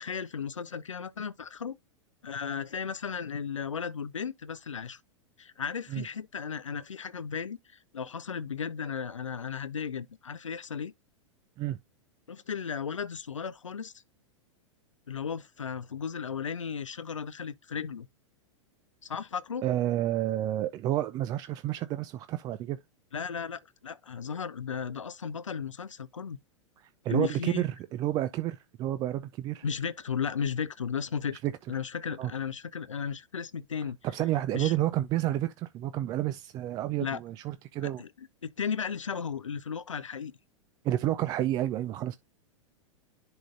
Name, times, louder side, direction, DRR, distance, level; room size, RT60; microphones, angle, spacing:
voice 1, 0.0-1.7 2.2-5.0 5.4-10.9 12.3-13.9 15.1-18.1 19.0-19.6 23.1-26.4 27.1-27.6 29.6-31.4 31.7-34.0 34.5-34.7 37.0-37.2 38.0-40.3, left 6 dB, 75° left, 0.5 m, -35 dB
voice 2, 19.6-22.8 27.0-29.6 31.4-31.5 32.2-32.3 34.1-38.0 40.8-42.2, right 13 dB, 25° right, 0.3 m, -30 dB
10.5 x 3.8 x 2.6 m
figure-of-eight pair, 95°, 16 cm